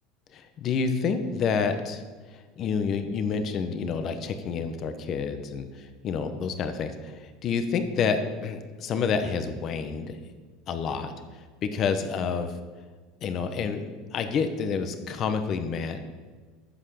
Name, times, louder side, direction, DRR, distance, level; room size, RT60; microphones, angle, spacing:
voice 1, 0.3-2.0 2.3-10.2 10.7-12.5 13.2-16.0, left 5 dB, 45° left, 8 dB, 1.2 m, -29 dB
13.5 x 5.7 x 6.6 m, 1.4 s
supercardioid pair, 105°, 0 cm